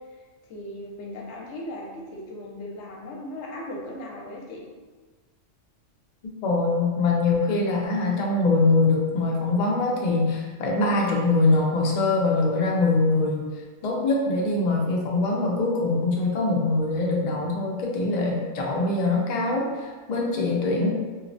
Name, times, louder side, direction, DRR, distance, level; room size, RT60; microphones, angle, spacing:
voice 1, 0.4-4.7, left 1 dB, 80° left, -3 dB, 0.9 m, -37 dB
voice 2, 6.4-13.5 13.8-19.7 20.1-20.9, left 3 dB, 60° left, -2 dB, 0.5 m, -23 dB
2.8 x 2.0 x 2.5 m, 1.4 s
omnidirectional pair, 1.2 m